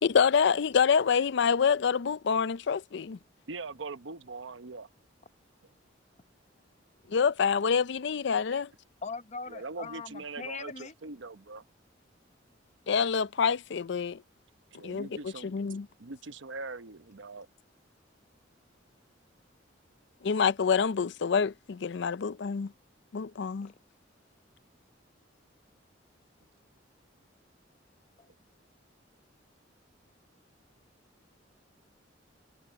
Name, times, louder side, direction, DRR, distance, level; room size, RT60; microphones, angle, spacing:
voice 1, 0.0-3.2 7.1-8.7 12.9-14.2 14.8-15.9 20.2-22.7 23.1-23.7, left 6 dB, 65° left, 0.5 m, -26 dB
voice 2, 3.5-4.9 8.5-8.6 9.5-11.6 14.7-15.6 16.0-17.5, right 3 dB, 85° right, 0.9 m, -42 dB
voice 3, 9.0-10.9 28.2-28.3, left 4 dB, 40° left, 1.0 m, -40 dB
head